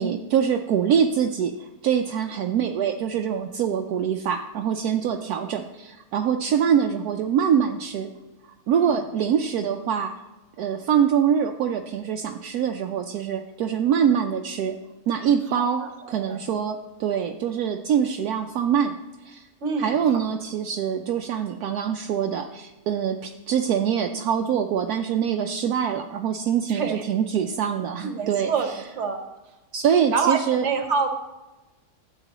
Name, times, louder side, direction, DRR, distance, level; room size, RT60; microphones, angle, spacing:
voice 1, 0.0-8.1 8.7-10.1 10.6-14.7 15.1-15.8 16.1-18.9 19.2-19.5 19.8-28.5 29.7-30.7, right 8 dB, 75° right, 4 dB, 1.1 m, -24 dB
voice 2, 15.5-16.4 19.6-20.2 26.7-27.0 28.0-28.7 29.0-29.2 30.1-31.1, right 5 dB, 50° right, 6 dB, 1.3 m, -27 dB
13.0 x 8.2 x 3.0 m, 1.1 s
omnidirectional pair, 1.7 m